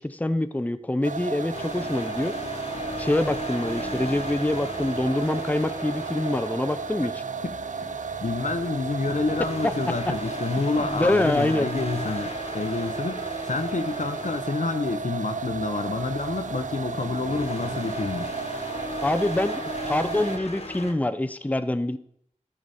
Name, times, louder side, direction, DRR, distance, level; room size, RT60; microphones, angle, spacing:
voice 1, 0.0-2.3 3.0-7.2 9.6-9.7 10.8-11.7 19.0-22.0, left 1 dB, 10° left, 0.5 m, -25 dB
sound 1, 1.0-20.4, right 5 dB, 75° right, 0.5 m, -34 dB
sound 2, 1.5-20.9, left 2 dB, 55° left, 1.3 m, -37 dB
voice 2, 8.2-18.3, left 3 dB, 70° left, 0.8 m, -28 dB
12.5 x 5.1 x 4.1 m
wide cardioid pair, 40°, 13 cm